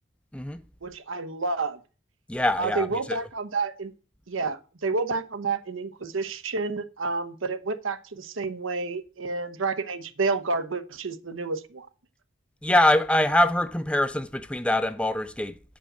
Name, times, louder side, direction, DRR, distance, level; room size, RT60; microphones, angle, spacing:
voice 1, 0.8-1.8 2.6-3.9 4.3-11.9, right 4 dB, 90° right, 0.9 m, -30 dB
voice 2, 2.3-3.2 12.6-15.5, left 1 dB, 5° left, 0.4 m, -23 dB
8.0 x 5.3 x 7.6 m
head